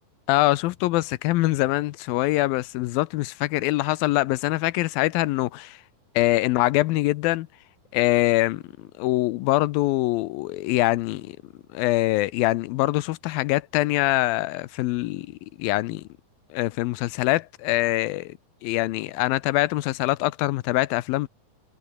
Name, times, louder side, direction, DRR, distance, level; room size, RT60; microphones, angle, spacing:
voice 1, 0.3-5.8 6.2-7.5 7.9-11.4 11.7-15.3 15.6-16.0 16.5-21.3, left 18 dB, 85° left, 2.6 m, -24 dB
omnidirectional pair, 4.1 m